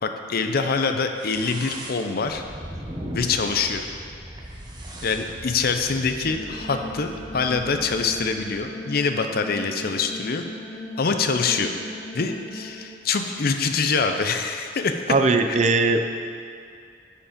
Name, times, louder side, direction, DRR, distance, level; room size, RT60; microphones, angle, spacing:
voice 1, 0.0-2.4 3.1-3.8 5.0-10.4 11.0-11.7 12.1-14.9 15.5-15.6, left 4 dB, 55° left, 6 dB, 0.6 m, -25 dB
sound 1, 1.2-8.7, right 1 dB, 25° right, 1.0 m, -39 dB
sound 2, 6.3-12.7, left 1 dB, 20° left, 1.7 m, -38 dB
voice 2, 15.1-16.0, right 3 dB, 40° right, 7 dB, 0.5 m, -19 dB
10.0 x 4.9 x 5.0 m, 2.2 s
head